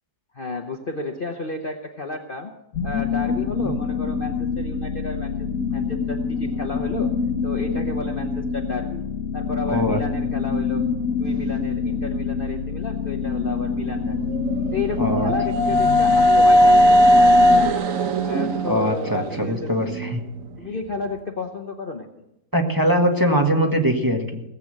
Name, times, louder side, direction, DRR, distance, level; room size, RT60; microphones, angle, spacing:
voice 1, 0.3-2.5 2.8-7.1 7.4-9.0 9.3-10.9 11.2-14.4 14.7-17.8 18.2-19.7 20.6-22.1, left 3 dB, 40° left, 3 dB, 1.0 m, -32 dB
sound 1, 2.7-17.7, left 5 dB, 60° left, 1.4 m, -26 dB
voice 2, 9.7-10.0 15.0-15.3 18.6-20.2 22.5-24.4, equal, 15° right, 1 dB, 1.4 m, -22 dB
sound 2, 14.3-20.2, equal, 60° right, 1.1 m, -18 dB
18.0 x 8.3 x 6.5 m, 0.87 s
omnidirectional pair, 1.7 m